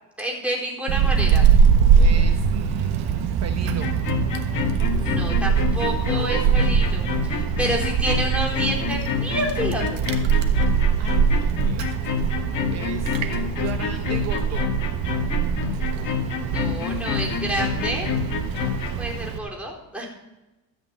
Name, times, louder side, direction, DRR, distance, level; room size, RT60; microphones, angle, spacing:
voice 1, 0.2-1.5 4.9-10.0 15.8-18.1 19.0-20.1, right 1 dB, 5° right, -2 dB, 4.0 m, -29 dB
Wind, 0.9-19.4, right 7 dB, 90° right, 1.4 m, -22 dB
voice 2, 2.0-3.9 6.1-6.6 10.4-11.9 12.7-14.6, right 8 dB, 45° right, 6 dB, 1.0 m, -37 dB
sound 1, 3.6-19.0, left 7 dB, 55° left, 1.8 m, -28 dB
13.5 x 5.9 x 8.3 m, 1.0 s
cardioid pair, 125°, 35 cm